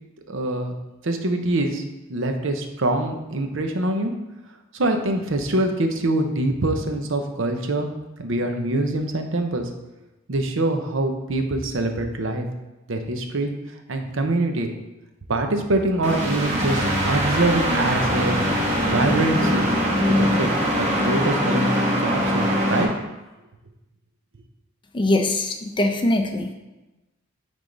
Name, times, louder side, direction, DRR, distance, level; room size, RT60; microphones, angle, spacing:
voice 1, 0.3-0.8 1.0-1.8 2.1-4.1 4.7-7.9 8.2-9.7 10.3-12.5 12.9-14.7 15.3-18.4 18.9-19.7 20.1-20.5 20.8-22.9, right 2 dB, 70° right, 5 dB, 0.8 m, -24 dB
sound 1, 16.0-22.8, equal, 35° right, 1.4 m, -22 dB
voice 2, 24.9-26.5, left 1 dB, 25° left, 5 dB, 0.6 m, -22 dB
9.3 x 3.6 x 3.9 m, 1.1 s
head